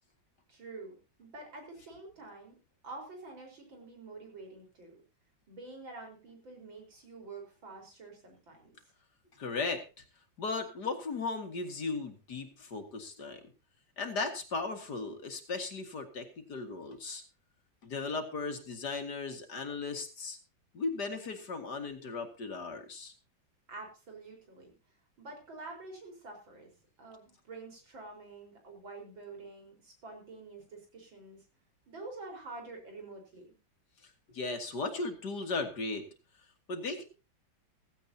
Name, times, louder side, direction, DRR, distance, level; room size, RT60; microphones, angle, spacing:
voice 1, 0.5-2.6 2.8-5.0 5.5-8.8 23.7-24.7 25.2-26.7 27.0-31.4 31.9-33.6, right 3 dB, 85° right, 2 dB, 5.4 m, -47 dB
voice 2, 9.4-9.8 10.4-13.4 14.0-17.2 17.8-20.4 20.7-23.1 34.3-36.1 36.7-37.0, left 3 dB, 60° left, 6 dB, 2.5 m, -36 dB
16.0 x 16.0 x 2.8 m, 0.31 s
omnidirectional pair, 2.1 m